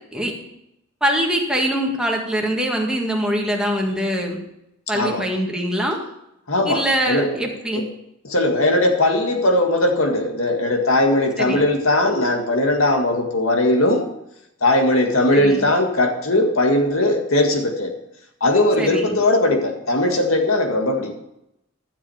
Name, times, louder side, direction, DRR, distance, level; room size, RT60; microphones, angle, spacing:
voice 1, 1.0-4.4 4.9-6.0 6.7-7.8 11.4-11.7 15.3-15.7 18.8-19.2, equal, 5° right, 0 dB, 1.7 m, -23 dB
voice 2, 6.5-7.3 7.7-7.8 8.2-14.1 14.6-17.9 18.4-21.1, left 1 dB, 80° left, 3 dB, 1.9 m, -19 dB
12.5 x 7.4 x 4.9 m, 0.82 s
head